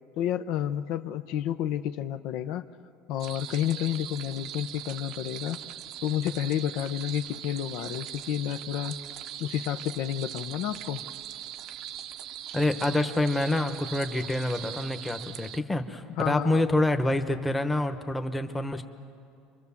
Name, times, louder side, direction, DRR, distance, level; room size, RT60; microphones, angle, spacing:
voice 1, 0.2-2.6 3.1-5.6 6.0-8.9 9.4-11.0 16.2-16.6, left 11 dB, 60° left, 9 dB, 0.8 m, -30 dB
sound 1, 3.2-15.6, right 11 dB, 50° right, 0.8 m, -40 dB
voice 2, 12.5-18.8, left 1 dB, 10° left, 6 dB, 1.2 m, -27 dB
29.5 x 24.0 x 7.2 m, 2.4 s
cardioid pair, 145°, 0 cm